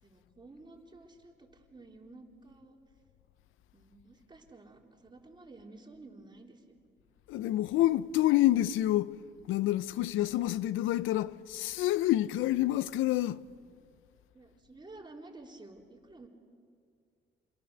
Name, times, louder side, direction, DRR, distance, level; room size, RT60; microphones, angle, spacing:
voice 1, 0.0-2.8 3.7-6.8 14.3-16.3, right 2 dB, 20° right, 3.6 m, -52 dB
voice 2, 7.3-9.2 9.5-13.4, left 14 dB, 90° left, 0.6 m, -28 dB
28.5 x 22.0 x 6.9 m
cardioid pair, 90°, 20 cm